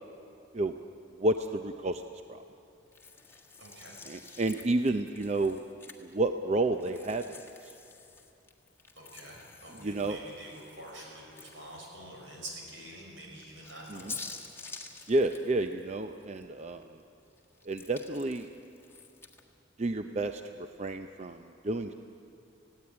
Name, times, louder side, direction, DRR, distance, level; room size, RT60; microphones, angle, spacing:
voice 1, 1.2-2.0 2.3-2.4 4.1-5.6 6.0-7.4 9.8-10.2 13.9-14.1 15.1-16.9 17.7-18.5 19.8-21.9, right 2 dB, 35° right, 7 dB, 0.5 m, -30 dB
sound 1, 2.9-6.3 6.8-12.0 12.4-12.5 13.4-16.4 16.8-19.4, left 5 dB, 15° left, 1.5 m, -48 dB
voice 2, 3.6-4.0 8.9-14.3, right 1 dB, 75° right, -1 dB, 6.1 m, -47 dB
18.0 x 16.5 x 9.8 m, 2.8 s
head